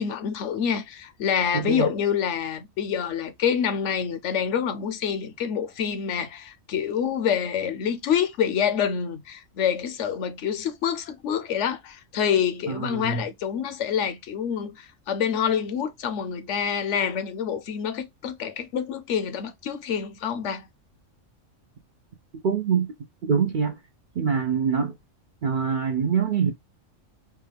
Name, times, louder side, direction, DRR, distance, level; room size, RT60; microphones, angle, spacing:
voice 1, 0.0-20.7, left 8 dB, 70° left, 0.9 m, -27 dB
voice 2, 1.5-1.9 12.7-13.2 22.4-22.9 23.2-23.8 24.2-24.9 25.4-26.5, right 6 dB, 60° right, 0.5 m, -24 dB
4.7 x 2.3 x 3.3 m
omnidirectional pair, 1.3 m